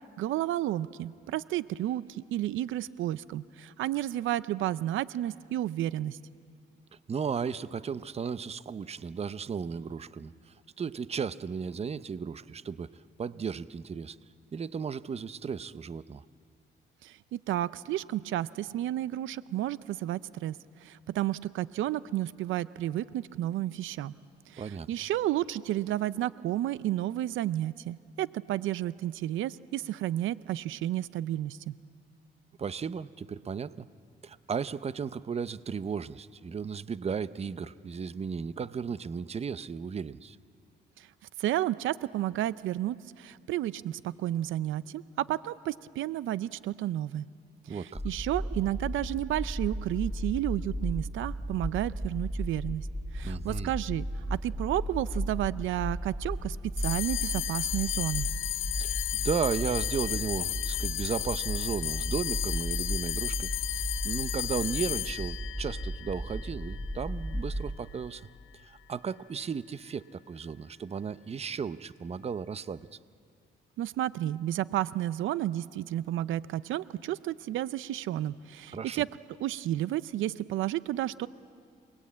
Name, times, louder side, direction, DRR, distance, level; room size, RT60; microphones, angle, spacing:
voice 1, 0.2-6.2 17.0-24.1 24.5-31.8 41.0-41.1 41.4-47.2 47.7-52.9 53.1-58.3 73.8-79.1 79.4-81.3, right 13 dB, 80° right, 17 dB, 0.5 m, -32 dB
voice 2, 7.1-12.9 13.2-14.2 14.5-16.2 24.6-24.9 32.6-33.9 34.2-40.4 47.7-48.0 53.2-53.7 58.8-68.2 68.6-72.9 78.7-79.0, right 6 dB, 30° right, 15 dB, 0.7 m, -35 dB
sound 1, 47.9-67.8, equal, 10° left, 0.9 m, -35 dB
sound 2, 56.8-67.4, left 15 dB, 85° left, 0.7 m, -34 dB
28.5 x 20.0 x 8.5 m, 2.3 s
cardioid pair, 90°, 20 cm